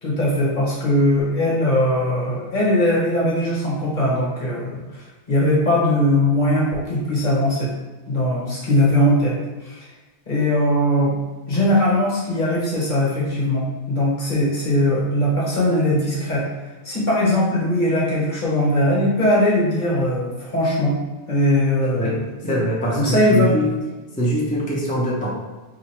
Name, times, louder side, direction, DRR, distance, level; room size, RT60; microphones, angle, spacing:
voice 1, 0.0-7.7 8.1-9.9 10.3-11.2 11.5-16.4 16.8-21.0 21.3-22.1 22.4-22.6 22.9-23.5, left 1 dB, 45° left, -5 dB, 1.1 m, -20 dB
voice 2, 21.8-22.2 22.4-23.7 24.2-25.4, equal, 10° left, -6 dB, 0.6 m, -23 dB
3.0 x 2.5 x 4.3 m, 1.3 s
omnidirectional pair, 1.2 m